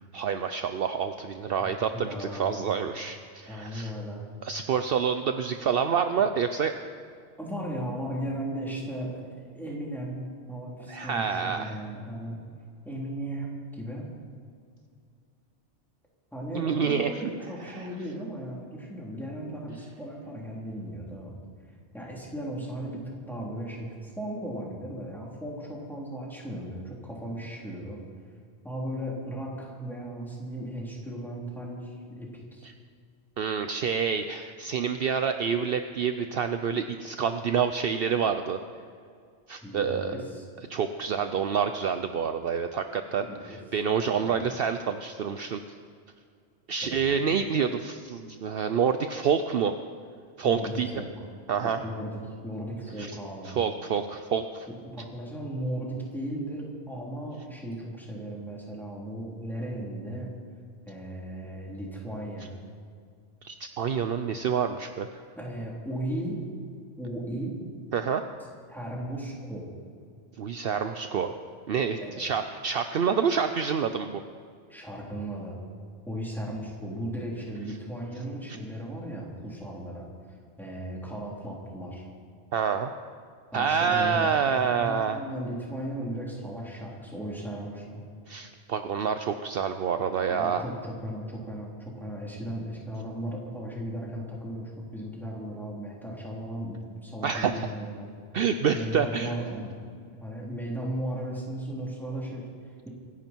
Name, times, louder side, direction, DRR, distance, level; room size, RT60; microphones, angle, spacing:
voice 1, 0.1-3.9 4.4-6.8 10.9-11.8 16.5-17.2 17.6-17.9 33.4-38.6 39.5-40.1 40.7-45.6 46.7-49.8 50.4-50.9 51.5-51.8 53.0-53.1 53.5-54.7 63.4-65.1 67.9-68.2 70.4-71.4 71.7-74.2 82.5-82.9 83.5-85.2 88.3-90.6 97.2-97.7 98.3-99.3, right 7 dB, 60° right, 8 dB, 0.8 m, -27 dB
voice 2, 1.5-2.8 3.5-4.3 7.4-12.4 12.8-14.1 16.3-21.4 21.9-28.0 28.6-32.7 39.6-40.4 43.2-43.6 44.2-44.5 46.8-47.2 50.4-51.1 51.6-53.6 54.7-60.3 60.9-62.6 65.4-66.4 67.0-67.6 68.7-69.7 72.0-72.2 74.7-75.6 76.1-80.1 80.6-82.1 83.5-88.0 90.3-98.2 98.7-99.7 100.2-102.9, right 1 dB, ahead, -4 dB, 3.6 m, -36 dB
26.0 x 11.0 x 4.6 m, 2.2 s
omnidirectional pair, 1.2 m